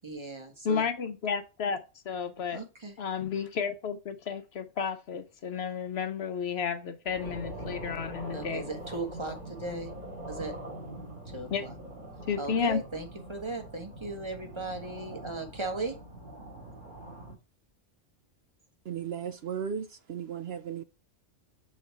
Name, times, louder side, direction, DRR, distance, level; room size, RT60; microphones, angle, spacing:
voice 1, 0.0-0.9 2.5-3.0 8.3-9.9 10.3-10.5 11.3-11.7 12.4-15.9, right 3 dB, 25° right, 1.4 m, -37 dB
voice 2, 0.6-2.6 3.0-8.6 11.5-11.6 12.3-12.8, left 6 dB, 65° left, 0.9 m, -32 dB
sound 1, 7.0-17.4, right 1 dB, 40° right, 2.1 m, -43 dB
voice 3, 18.9-20.8, right 8 dB, 65° right, 0.8 m, -35 dB
6.5 x 4.2 x 4.5 m
omnidirectional pair, 1.3 m